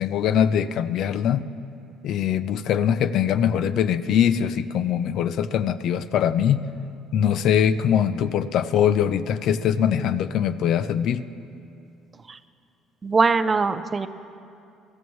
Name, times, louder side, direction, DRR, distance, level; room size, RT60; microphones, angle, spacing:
voice 1, 0.0-1.5 2.0-6.6 7.1-11.3, left 9 dB, 60° left, 13 dB, 0.4 m, -22 dB
voice 2, 13.0-14.1, right 4 dB, 25° right, 12 dB, 0.5 m, -21 dB
23.0 x 14.5 x 3.1 m, 2.6 s
cardioid pair, 130°, 0 cm